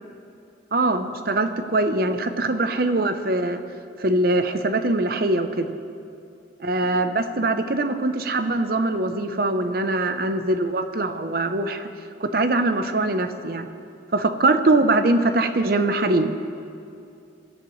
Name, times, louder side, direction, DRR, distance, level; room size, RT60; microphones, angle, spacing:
voice 1, 0.7-3.6 4.0-5.7 6.6-11.9 12.2-13.7 14.1-16.3, right 2 dB, 50° right, 9 dB, 0.7 m, -22 dB
22.0 x 13.5 x 3.2 m, 2.5 s
head